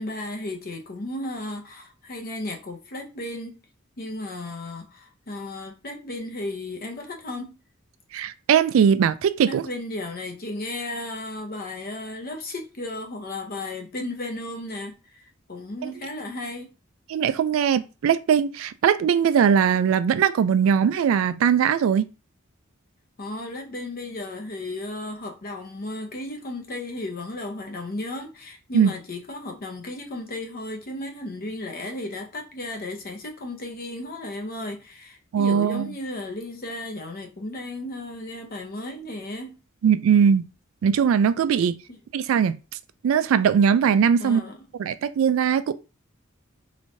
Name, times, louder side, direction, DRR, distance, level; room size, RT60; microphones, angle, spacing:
voice 1, 0.0-3.6 4.0-7.6 9.5-16.7 23.2-39.6 41.9-42.0 44.2-44.6, left 2 dB, 45° left, 0.7 m, -34 dB
voice 2, 8.1-9.6 17.1-22.1 28.7-28.9 35.3-35.9 39.8-40.4 40.8-41.7 42.1-42.5 43.0-44.4 44.8-45.7, right 7 dB, 75° right, 0.3 m, -20 dB
3.2 x 3.1 x 2.6 m
head